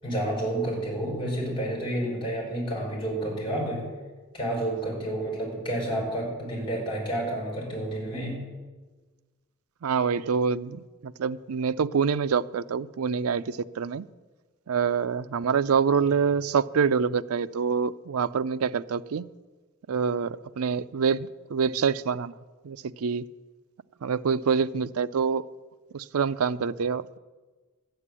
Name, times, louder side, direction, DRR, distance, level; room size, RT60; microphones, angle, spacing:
voice 1, 0.0-3.8 4.3-8.4, right 1 dB, 25° left, -2 dB, 5.8 m, -30 dB
voice 2, 9.8-14.1 14.7-19.2 19.9-22.4 22.6-23.2 24.0-25.4 25.9-27.2, right 6 dB, 85° right, 14 dB, 0.5 m, -26 dB
12.0 x 7.9 x 9.8 m, 1.3 s
head